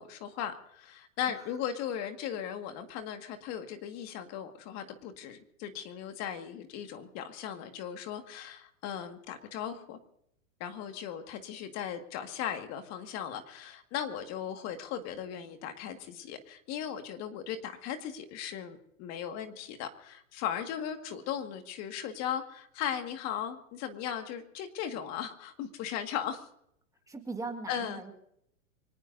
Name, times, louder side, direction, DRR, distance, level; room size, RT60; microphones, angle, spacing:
voice 1, 0.0-10.0 10.6-26.5 27.7-28.0, left 9 dB, 40° left, 6 dB, 2.0 m, -37 dB
voice 2, 27.1-28.1, right 3 dB, 10° right, 4 dB, 1.8 m, -39 dB
25.0 x 19.0 x 2.7 m, 0.72 s
hypercardioid pair, 125°, 40 cm